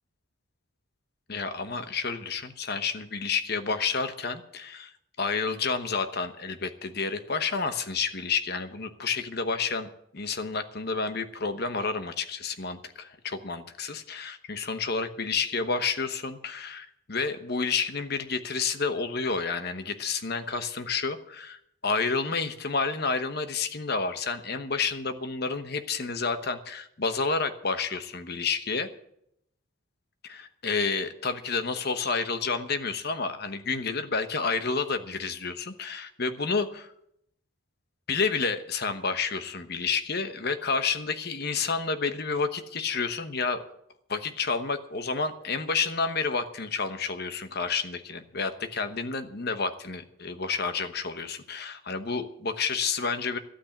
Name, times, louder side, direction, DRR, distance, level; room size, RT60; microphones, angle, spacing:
voice 1, 1.3-4.9 5.2-28.9 30.3-30.4 30.6-36.9 38.1-43.6 44.1-53.4, left 4 dB, 50° left, 9 dB, 1.1 m, -30 dB
13.0 x 8.9 x 8.1 m, 0.74 s
head